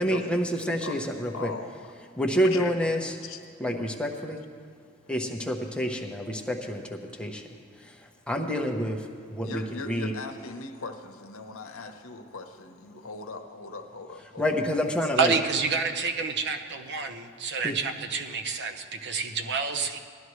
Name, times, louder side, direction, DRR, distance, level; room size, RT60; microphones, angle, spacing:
voice 1, 0.0-1.5 2.2-3.2 3.6-4.4 5.1-7.4 7.8-10.1 14.4-15.3 17.6-17.7, equal, 5° left, 1 dB, 0.9 m, -28 dB
voice 2, 1.3-1.7 2.4-2.7 3.2-3.4 9.4-14.4, left 3 dB, 75° left, 5 dB, 1.0 m, -39 dB
voice 3, 15.2-20.0, right 5 dB, 55° right, 7 dB, 0.8 m, -28 dB
19.0 x 12.5 x 3.2 m, 2.1 s
head